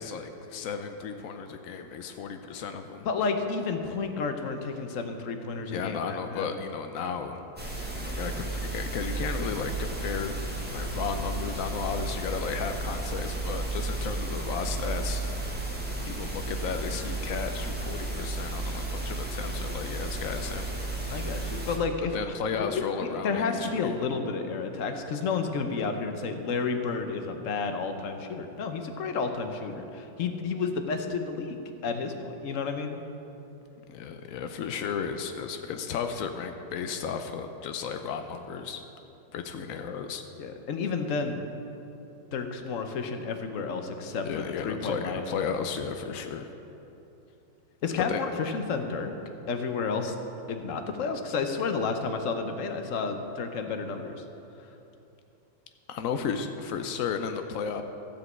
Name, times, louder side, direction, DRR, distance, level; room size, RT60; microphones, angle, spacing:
voice 1, 0.0-3.1 5.7-7.4 7.9-10.4 10.7-15.2 16.1-20.7 22.1-23.9 33.9-38.8 39.3-40.2 44.2-46.5 48.0-48.2 55.9-57.8, left 6 dB, 85° left, 6 dB, 0.7 m, -34 dB
voice 2, 3.0-6.6 21.1-33.0 40.4-41.4 42.3-45.3 47.8-49.1 49.5-50.1 50.5-54.2 54.6-54.7, left 4 dB, 60° left, 6 dB, 0.9 m, -31 dB
sound 1, 7.6-21.8, right 2 dB, 5° right, 1.0 m, -33 dB
14.5 x 5.2 x 7.8 m, 3.0 s
omnidirectional pair, 2.1 m